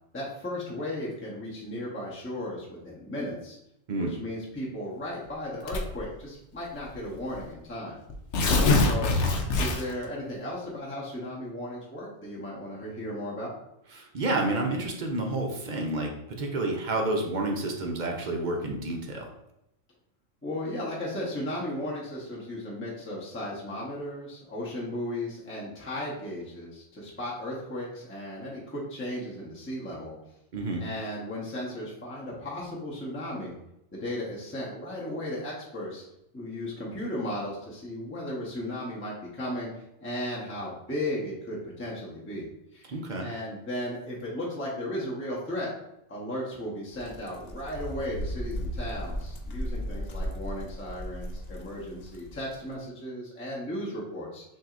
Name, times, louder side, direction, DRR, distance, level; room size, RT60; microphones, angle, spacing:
voice 1, 0.1-3.6 4.0-8.0 8.7-9.1 9.6-13.5 20.4-30.1 30.8-33.6 33.9-36.0 36.3-39.7 40.0-42.9 43.2-45.7 46.1-54.4, left 1 dB, 10° left, -5 dB, 0.8 m, -35 dB
Tearing, 5.7-6.1 7.0-7.1 7.3-7.4 8.1-10.1, left 3 dB, 65° left, 0.8 m, -24 dB
voice 2, 13.9-19.3 30.5-30.8 42.9-43.3, right 2 dB, 50° right, 1 dB, 0.6 m, -29 dB
sound 1, 46.9-52.6, equal, 90° left, 0.3 m, -36 dB
5.9 x 2.7 x 2.5 m, 0.83 s
omnidirectional pair, 1.3 m